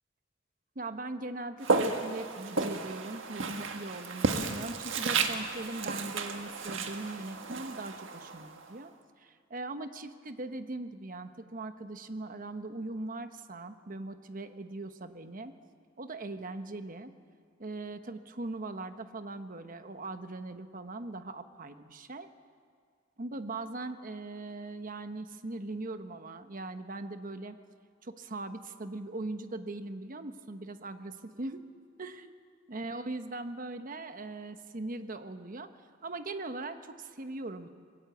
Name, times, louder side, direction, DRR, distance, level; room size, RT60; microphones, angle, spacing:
voice 1, 0.7-8.9 9.2-15.5 16.0-17.1 17.6-22.3 23.2-27.6 28.0-31.6 32.0-32.3 32.7-35.7 36.0-37.7, right 2 dB, 45° right, 9 dB, 1.1 m, -40 dB
Walk footsteps, 1.6-8.7, right 4 dB, 90° right, 1.5 m, -33 dB
21.0 x 17.5 x 8.0 m, 2.1 s
head